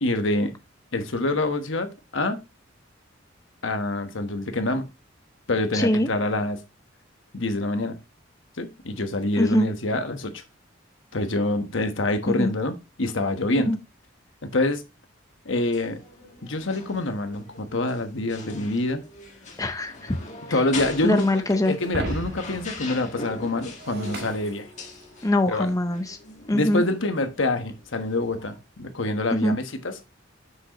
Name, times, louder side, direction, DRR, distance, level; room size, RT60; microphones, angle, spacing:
voice 1, 0.0-0.5 0.9-2.4 3.6-4.9 5.5-6.6 7.3-8.0 8.6-10.4 11.1-13.7 14.4-14.8 15.4-16.0 16.4-19.0 20.5-24.7 25.5-25.7 26.5-30.1, left 2 dB, 70° left, 1.2 m, -26 dB
voice 2, 5.7-6.1 9.4-9.7 12.3-12.5 13.6-13.8 19.6-20.2 20.5-20.6 21.0-21.8 25.2-26.2 26.5-26.8 29.3-29.6, left 1 dB, 15° left, 0.6 m, -23 dB
sound 1, 15.6-28.6, left 3 dB, 40° left, 1.7 m, -42 dB
Shatter, 21.8-25.3, right 1 dB, 55° right, 1.7 m, -36 dB
7.7 x 6.3 x 3.0 m
head